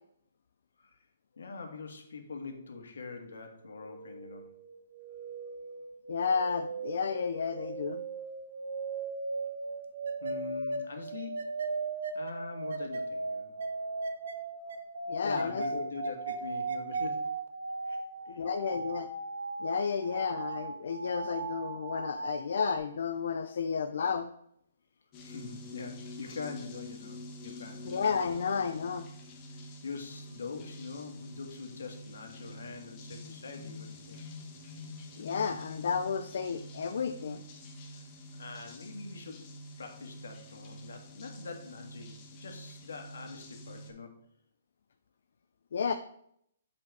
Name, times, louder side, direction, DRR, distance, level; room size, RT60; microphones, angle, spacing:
voice 1, 1.4-4.5 10.2-11.5 12.1-13.5 15.2-17.4 17.8-18.0 18.3-18.4 18.7-18.8 25.2-27.9 29.5-34.2 37.9-38.0 38.3-39.5 39.8-44.2, left 4 dB, 80° left, 3 dB, 1.6 m, -43 dB
sound 1, 3.6-22.8, right 3 dB, 70° right, 1.0 m, -37 dB
voice 2, 6.1-8.0 15.1-15.9 18.3-19.1 19.6-24.3 27.8-29.1 35.2-37.4 45.7-45.9, left 6 dB, 65° left, 8 dB, 0.5 m, -32 dB
sound 2, 25.1-43.9, left 1 dB, 25° left, 1.0 m, -47 dB
7.5 x 4.2 x 4.7 m, 0.70 s
hypercardioid pair, 160°, 0 cm